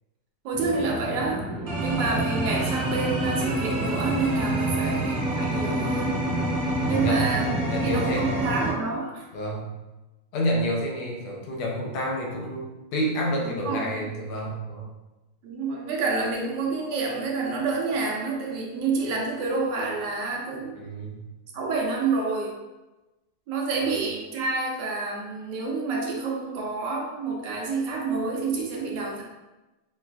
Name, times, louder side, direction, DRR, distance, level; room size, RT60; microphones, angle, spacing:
voice 1, 0.4-1.5 1.8-6.3 6.9-9.2 13.4-14.1 15.4-20.7 21.5-22.5 23.5-29.2, right 4 dB, 75° right, -1 dB, 1.1 m, -28 dB
sound 1, 0.5-8.7, right 1 dB, 45° right, 0.9 m, -27 dB
voice 2, 4.5-5.0 6.8-8.4 9.3-9.7 10.3-12.6 12.9-14.9 20.7-21.2, equal, 85° left, -1 dB, 1.6 m, -29 dB
5.7 x 2.4 x 2.2 m, 1.1 s
omnidirectional pair, 2.3 m